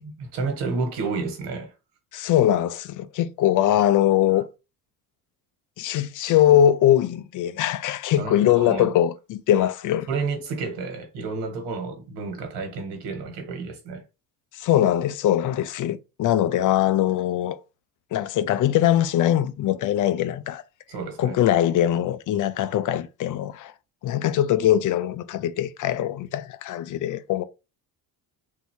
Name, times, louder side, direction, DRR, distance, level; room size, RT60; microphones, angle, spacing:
voice 1, 0.0-1.7 8.2-8.9 10.1-14.0 20.9-21.4, right 4 dB, 90° right, 1.4 m, -30 dB
voice 2, 2.1-4.5 5.8-10.1 14.5-17.6 18.1-20.6 21.2-23.7 24.0-27.4, left 11 dB, 50° left, 0.5 m, -22 dB
3.4 x 2.7 x 4.4 m
cardioid pair, 125°, 40 cm